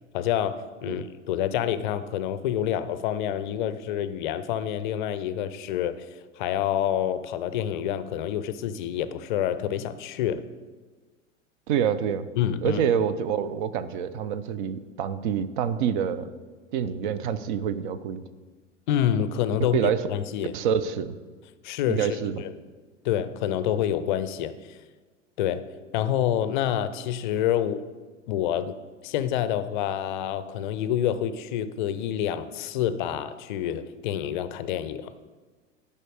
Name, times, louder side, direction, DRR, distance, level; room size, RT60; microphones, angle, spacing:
voice 1, 0.1-6.0 6.4-10.4 12.4-12.8 18.9-20.5 21.6-22.5 23.0-24.5 25.4-25.6 25.9-27.8 28.3-28.7 29.0-35.1, left 10 dB, 40° left, 13 dB, 0.5 m, -27 dB
voice 2, 11.7-12.3 12.6-16.3 16.7-18.2 19.7-20.0 20.5-21.2 21.9-22.4, right 8 dB, 40° right, 14 dB, 0.6 m, -26 dB
10.5 x 5.5 x 4.9 m, 1.4 s
figure-of-eight pair, 90°, 38 cm